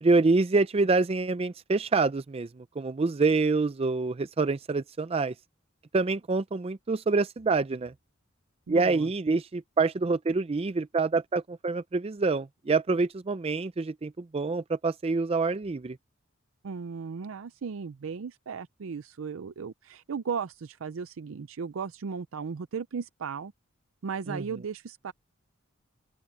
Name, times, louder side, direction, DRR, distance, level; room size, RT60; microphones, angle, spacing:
voice 1, 0.0-5.3 5.9-7.9 8.7-16.0 24.3-24.4, right 3 dB, 30° right, 0.4 m, -26 dB
voice 2, 8.7-9.1 16.6-23.5 24.0-25.1, right 6 dB, 80° right, 0.5 m, -36 dB
open air
head